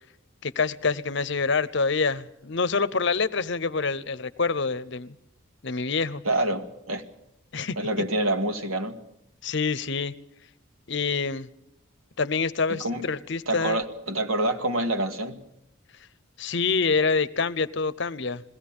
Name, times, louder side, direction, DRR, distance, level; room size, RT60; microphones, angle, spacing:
voice 1, 0.4-5.1 5.6-6.2 7.5-7.8 9.4-10.1 10.9-11.5 12.2-13.8 16.4-18.4, left 4 dB, 55° left, 15 dB, 0.7 m, -26 dB
voice 2, 6.3-7.0 7.8-9.0 12.7-13.1 13.5-15.4, right 1 dB, 80° right, 6 dB, 1.9 m, -27 dB
21.0 x 16.5 x 8.7 m, 0.79 s
head